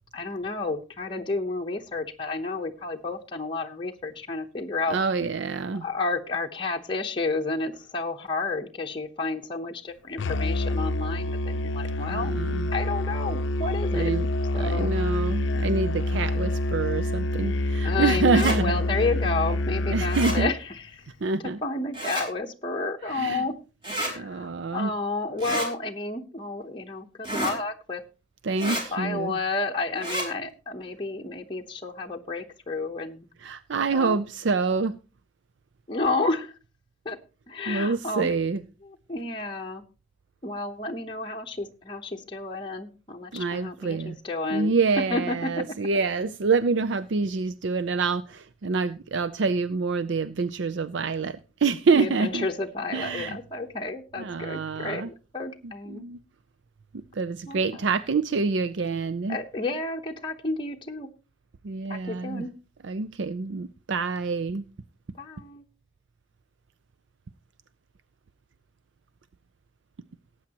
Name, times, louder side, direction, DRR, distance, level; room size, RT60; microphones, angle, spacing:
voice 1, 0.1-5.0 5.8-12.3 12.7-14.1 14.5-14.9 17.8-21.0 21.6-23.6 24.0-28.0 28.7-33.3 33.9-34.2 35.9-36.5 37.0-37.2 37.5-38.3 38.8-39.8 40.4-44.7 45.1-45.5 51.9-56.0 57.5-57.7 59.3-61.1 61.9-62.5 65.2-65.6, left 3 dB, 25° left, 0.9 m, -31 dB
voice 2, 4.9-5.8 12.1-12.7 13.9-14.3 14.5-18.8 19.9-20.5 21.2-21.6 23.0-23.4 24.0-24.9 28.4-29.4 33.4-35.0 37.7-38.6 43.3-44.2 44.5-52.5 52.9-53.4 54.2-55.1 55.6-56.2 57.1-59.4 61.6-62.4 62.8-64.6, right 4 dB, 65° right, 0.5 m, -27 dB
Musical instrument, 10.2-20.6, left 2 dB, 70° left, 0.6 m, -27 dB
sound 1, 18.3-18.6 20.1-20.4 21.9-22.3 23.8-24.1 25.4-25.7 27.2-27.6 28.6-28.8 30.0-30.3, right 1 dB, 25° right, 4.0 m, -30 dB
18.5 x 8.7 x 2.9 m
head